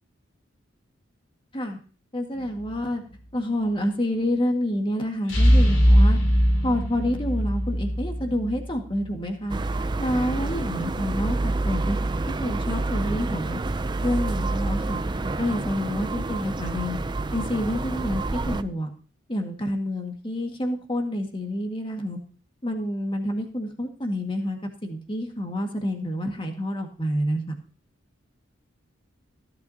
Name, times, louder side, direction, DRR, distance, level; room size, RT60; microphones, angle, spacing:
voice 1, 2.1-3.0 3.3-6.2 6.6-9.6 10.0-12.0 12.3-13.6 14.0-15.0 15.4-17.0 17.3-18.9 19.3-22.2 22.6-27.5, left 1 dB, 25° left, 3 dB, 1.9 m, -28 dB
sound 1, 2.4-2.9 5.3-9.1, equal, 75° left, 3.3 m, -21 dB
sound 2, 9.5-18.6, right 2 dB, 25° right, 0.5 m, -28 dB
16.5 x 11.5 x 2.9 m, 0.37 s
head